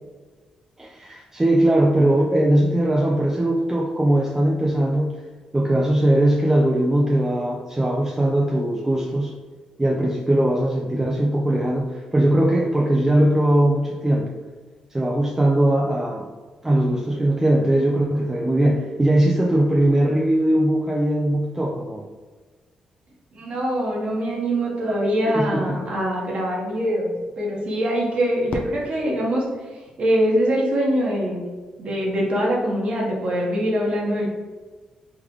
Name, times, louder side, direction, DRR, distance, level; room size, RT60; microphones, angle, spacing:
voice 1, 0.8-5.2 5.5-9.3 9.8-14.3 14.9-16.3 16.6-22.0 25.3-25.8, right 1 dB, 15° right, -2 dB, 0.5 m, -20 dB
voice 2, 23.3-29.4 29.7-31.4 31.8-34.3, equal, 60° right, -3 dB, 1.1 m, -23 dB
Fireworks, 28.5-30.7, left 2 dB, 55° left, 0.5 m, -36 dB
3.7 x 3.2 x 3.1 m, 1.4 s
cardioid pair, 75°, 2 cm